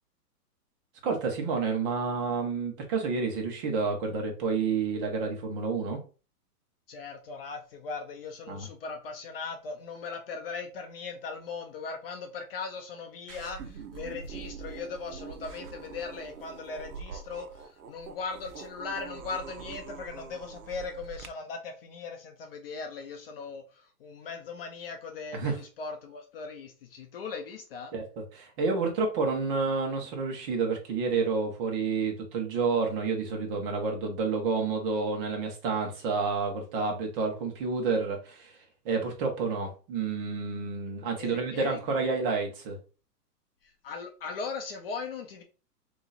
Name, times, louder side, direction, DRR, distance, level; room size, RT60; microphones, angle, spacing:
voice 1, 1.0-6.0 8.5-8.7 25.3-25.6 27.9-28.0 28.3-38.5 38.8-42.8, right 4 dB, 35° right, 1.2 m, -29 dB
voice 2, 6.9-27.9 41.2-42.0 43.6-45.4, left 4 dB, 35° left, 0.6 m, -39 dB
sound 1, 13.3-21.3, right 6 dB, 65° right, 1.0 m, -44 dB
3.9 x 3.0 x 4.0 m
hypercardioid pair, 150°, 48 cm